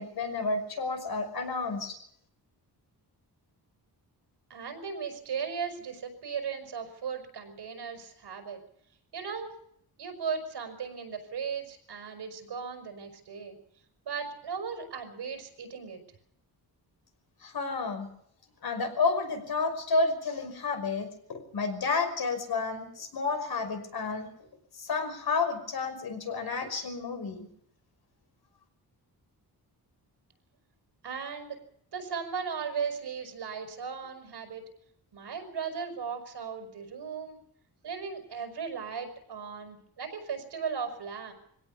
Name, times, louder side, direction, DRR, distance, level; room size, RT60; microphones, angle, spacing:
voice 1, 0.0-1.9 17.4-18.1 18.6-24.3 24.8-27.5, left 4 dB, 65° left, 6 dB, 5.6 m, -31 dB
voice 2, 4.5-8.6 9.1-9.5 10.0-13.6 14.0-16.0 31.0-31.6 31.9-34.6 35.1-37.4 37.8-41.3, right 6 dB, 75° right, 6 dB, 5.5 m, -37 dB
24.0 x 17.0 x 7.0 m, 0.68 s
wide cardioid pair, 155°, 40 cm